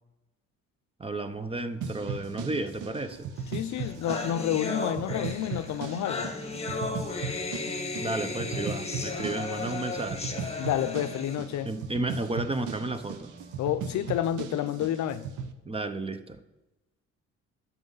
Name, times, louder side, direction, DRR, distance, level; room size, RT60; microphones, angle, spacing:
voice 1, 1.0-3.2 8.0-10.2 11.6-13.3 15.7-16.4, right 2 dB, 20° right, 11 dB, 0.6 m, -32 dB
sound 1, 1.3-14.1, right 2 dB, 45° right, 2.9 m, -51 dB
sound 2, 1.8-15.5, right 5 dB, 80° right, 0.8 m, -38 dB
voice 2, 3.5-6.4 10.6-11.7 13.6-15.3, left 11 dB, 70° left, 12 dB, 0.5 m, -29 dB
sound 3, 3.5-3.6 3.8-11.4, left 3 dB, 20° left, 1.1 m, -35 dB
10.5 x 6.1 x 3.9 m, 1.0 s
cardioid pair, 90°, 30 cm